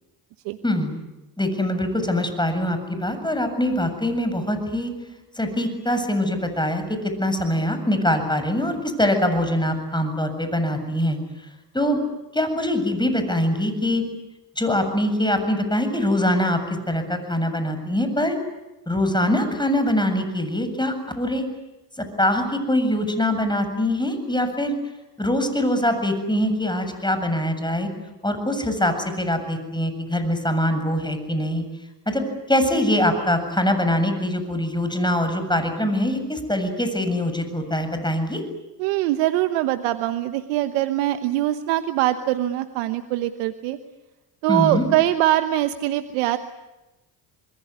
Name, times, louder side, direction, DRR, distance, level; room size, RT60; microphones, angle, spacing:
voice 1, 0.6-1.0 1.4-4.9 5.4-11.2 11.7-12.0 12.3-14.0 14.6-18.4 18.9-21.5 22.0-24.8 25.2-27.9 28.2-31.7 32.1-32.2 32.5-38.4 44.5-44.9, left 1 dB, 10° left, 8 dB, 7.5 m, -23 dB
voice 2, 38.8-43.8 44.4-46.4, right 14 dB, 85° right, 9 dB, 1.2 m, -22 dB
27.0 x 21.5 x 9.7 m, 1.0 s
hypercardioid pair, 60°, 50 cm